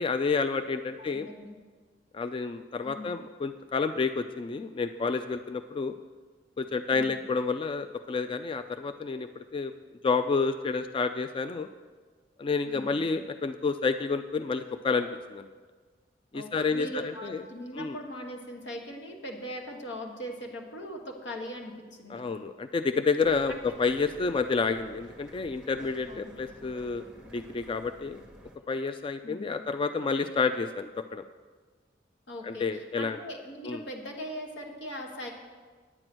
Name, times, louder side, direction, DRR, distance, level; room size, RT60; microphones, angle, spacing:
voice 1, 0.0-1.3 2.1-5.9 6.6-9.7 10.0-11.7 12.4-15.5 16.3-17.4 17.7-18.0 22.1-27.0 27.3-28.2 28.7-31.2 32.4-33.2 33.6-33.8, left 4 dB, 30° left, 9 dB, 0.3 m, -29 dB
voice 2, 0.9-1.5 2.8-3.2 6.9-7.1 12.6-13.0 16.3-22.2 23.5-23.6 26.1-26.3 29.2-29.6 32.3-35.3, equal, 85° left, 2 dB, 1.6 m, -40 dB
sound 1, 23.2-28.6, right 1 dB, 5° right, 0.8 m, -51 dB
9.7 x 9.1 x 6.2 m, 1.5 s
head